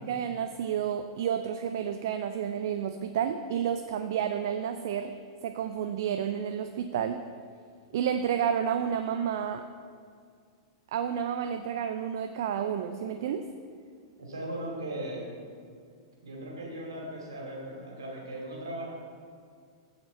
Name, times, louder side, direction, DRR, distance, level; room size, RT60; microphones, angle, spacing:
voice 1, 0.1-5.2 5.4-7.2 7.9-9.6 10.9-13.5, right 8 dB, 55° right, 8 dB, 0.4 m, -30 dB
voice 2, 14.2-15.2 16.2-18.9, right 1 dB, 70° right, -1 dB, 2.5 m, -38 dB
15.0 x 5.1 x 4.0 m, 2.2 s
figure-of-eight pair, 100°, 2 cm